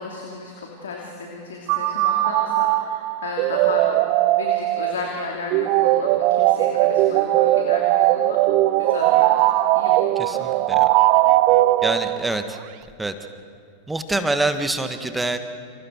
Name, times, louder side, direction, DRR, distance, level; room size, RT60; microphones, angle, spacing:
voice 1, 0.0-3.9 4.4-8.4 8.8-9.4 9.7-10.5, left 4 dB, 65° left, 0 dB, 2.8 m, -34 dB
sound 1, 1.7-12.4, right 15 dB, 45° right, 0.7 m, -19 dB
voice 2, 10.2-10.8 11.8-12.6 13.0-13.1 13.9-15.4, right 2 dB, 5° right, 8 dB, 1.7 m, -25 dB
29.5 x 28.5 x 4.7 m, 2.3 s
figure-of-eight pair, 90°, 0 cm